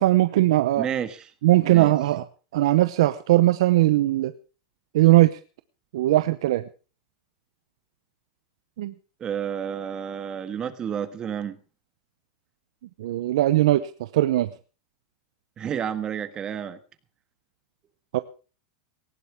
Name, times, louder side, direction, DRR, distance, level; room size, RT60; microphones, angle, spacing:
voice 1, 0.0-0.9 1.4-2.2 2.5-4.3 4.9-5.4 5.9-6.6 8.8-8.9 13.0-14.5 18.1-18.2, right 16 dB, 75° right, 12 dB, 0.8 m, -19 dB
voice 2, 0.8-1.3 1.6-1.9 9.2-11.6 15.6-16.8, right 8 dB, 25° right, 11 dB, 1.5 m, -30 dB
19.0 x 15.5 x 3.6 m, 0.36 s
supercardioid pair, 130°, 3 cm